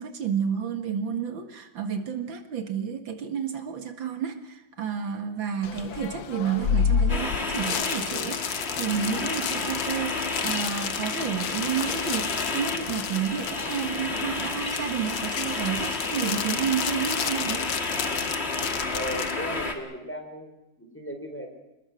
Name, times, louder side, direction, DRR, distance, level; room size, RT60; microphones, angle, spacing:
voice 1, 0.0-17.7, right 7 dB, 85° right, 6 dB, 2.6 m, -30 dB
sound 1, 5.6-19.3, left 7 dB, 80° left, 1.9 m, -31 dB
sound 2, 7.1-19.7, left 3 dB, 35° left, 2.4 m, -31 dB
voice 2, 18.9-21.5, equal, 5° left, 3 dB, 4.7 m, -36 dB
28.5 x 20.5 x 6.4 m, 0.97 s
omnidirectional pair, 2.1 m